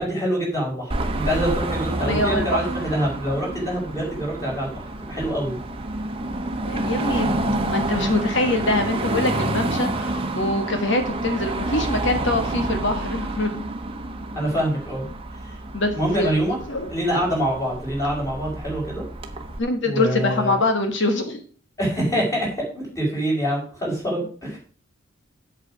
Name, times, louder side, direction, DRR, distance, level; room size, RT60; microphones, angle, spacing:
voice 1, 0.0-5.6 14.3-15.1 15.4-15.5 15.9-16.6 16.9-19.0 19.8-20.5 21.8-24.6, equal, 15° left, -3 dB, 5.2 m, -25 dB
Car passing by / Traffic noise roadway noise / Engine, 0.9-19.6, right 2 dB, 30° right, 1.1 m, -28 dB
voice 2, 2.0-2.6 6.6-7.3 7.7-13.6 15.7-16.9 19.6-21.4, left 2 dB, 65° left, 6 dB, 1.6 m, -24 dB
8.1 x 7.7 x 5.1 m, 0.43 s
head